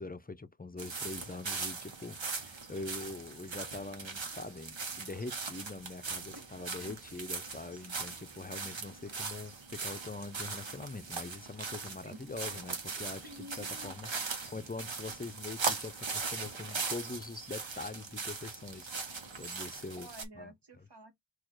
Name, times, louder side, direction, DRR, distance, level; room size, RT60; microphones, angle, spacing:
voice 1, 0.0-14.1 14.5-20.1 20.4-20.5, left 3 dB, 20° left, 0.5 m, -43 dB
sound 1, 0.8-20.2, right 4 dB, 85° right, 1.1 m, -40 dB
voice 2, 13.2-13.9 20.0-21.1, equal, 65° right, 1.5 m, -50 dB
4.3 x 2.5 x 4.5 m
wide cardioid pair, 40°, 44 cm